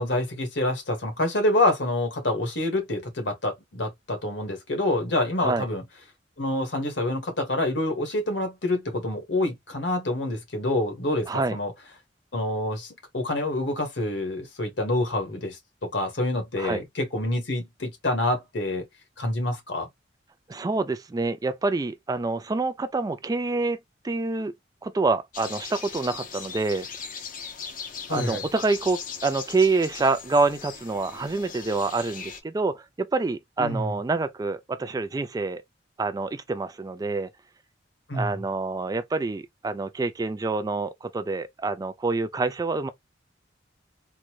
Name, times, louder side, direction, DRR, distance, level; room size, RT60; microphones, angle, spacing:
voice 1, 0.0-5.8 6.4-11.7 12.3-18.9 19.2-19.9 28.1-28.4 33.6-33.9 38.1-38.4, left 1 dB, 75° left, 1.4 m, -27 dB
voice 2, 11.3-11.6 16.6-16.8 20.5-23.8 24.0-24.5 24.8-26.9 28.1-35.6 36.0-37.3 38.1-42.9, right 3 dB, 20° right, 0.3 m, -27 dB
sound 1, 25.3-32.4, left 6 dB, 45° left, 0.7 m, -39 dB
3.8 x 2.1 x 3.0 m
head